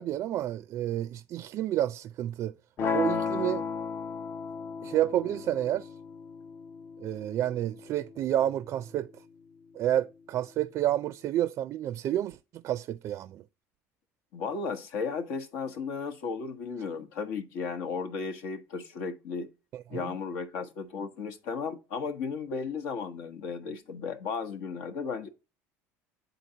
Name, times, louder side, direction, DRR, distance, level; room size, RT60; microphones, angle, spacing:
voice 1, 0.0-2.5 2.9-3.6 4.8-5.9 7.0-9.1 9.7-13.4 19.7-20.1, right 12 dB, 50° right, 0.4 m, -30 dB
sound 1, 2.8-8.8, left 5 dB, 45° left, 0.6 m, -35 dB
voice 2, 14.3-19.5 19.9-25.3, left 5 dB, 80° left, 1.0 m, -35 dB
9.0 x 3.9 x 2.7 m
supercardioid pair, 105°, 6 cm